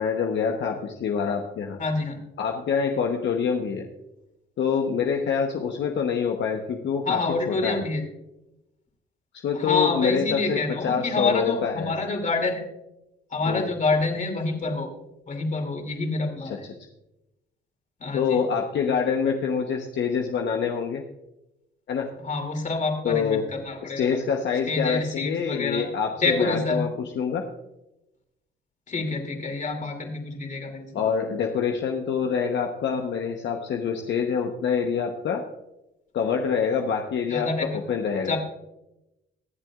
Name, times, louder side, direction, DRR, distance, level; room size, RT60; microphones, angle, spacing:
voice 1, 0.0-1.8 2.4-3.8 4.6-7.2 7.5-7.8 9.4-11.9 13.4-13.7 16.4-16.6 18.1-21.0 21.9-22.1 23.0-23.5 23.8-27.4 30.9-35.4 36.1-38.4, left 6 dB, 65° left, 2 dB, 1.1 m, -26 dB
voice 2, 1.8-2.2 7.0-8.0 9.5-12.6 13.3-14.9 15.3-16.5 18.0-18.4 22.2-24.1 24.7-25.9 26.2-26.8 28.9-30.9 37.3-37.7 38.3-38.4, left 3 dB, 40° left, 4 dB, 2.7 m, -27 dB
22.5 x 7.7 x 2.5 m, 0.90 s
cardioid pair, 90°, 20 cm